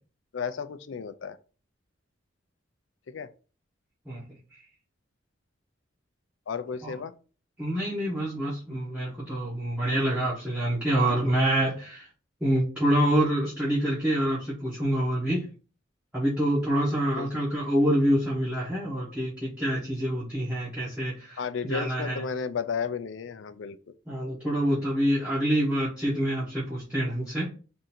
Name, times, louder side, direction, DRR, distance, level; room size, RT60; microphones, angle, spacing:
voice 1, 0.3-1.4 3.1-3.3 6.5-7.1 17.1-17.5 21.4-23.8, left 6 dB, 70° left, 0.4 m, -33 dB
voice 2, 7.6-12.1 12.4-15.5 16.1-22.3 24.1-27.5, right 1 dB, 5° right, 1.1 m, -26 dB
3.7 x 2.7 x 4.3 m
head